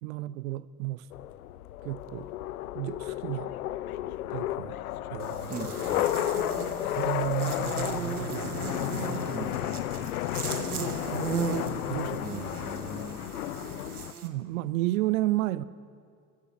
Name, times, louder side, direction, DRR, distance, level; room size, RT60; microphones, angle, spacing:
voice 1, 0.0-1.1 1.8-2.3 2.7-3.5 4.3-4.8 5.1-5.6 6.8-9.5 11.1-12.3 14.2-15.6, right 16 dB, 70° right, 17 dB, 0.6 m, -33 dB
sound 1, 1.1-14.1, left 13 dB, 75° left, 0.6 m, -33 dB
Buzz, 5.2-14.3, right 6 dB, 90° right, 1.0 m, -37 dB
voice 2, 5.5-6.1 9.3-10.1 12.2-13.3, right 4 dB, 15° right, 9 dB, 1.1 m, -40 dB
15.0 x 7.0 x 9.6 m, 2.2 s
figure-of-eight pair, 70°, 43 cm